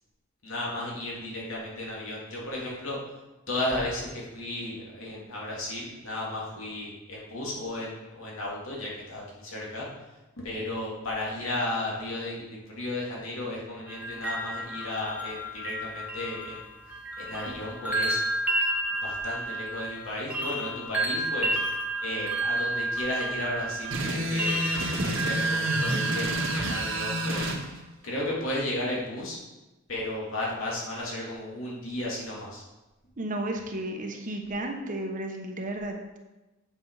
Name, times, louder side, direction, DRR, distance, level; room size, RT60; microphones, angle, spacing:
voice 1, 0.4-3.0 3.5-9.9 10.4-16.7 17.2-18.2 19.0-21.6 22.0-24.7 25.0-27.8 28.0-29.4 29.9-32.6, left 1 dB, 70° left, -4 dB, 3.0 m, -34 dB
sound 1, 13.9-27.5, right 1 dB, 5° right, 1.2 m, -31 dB
sound 2, 23.9-27.6, right 1 dB, 70° right, 1.7 m, -29 dB
voice 2, 33.2-36.2, right 1 dB, 40° right, 3 dB, 1.2 m, -33 dB
8.7 x 7.1 x 4.9 m, 1.1 s
head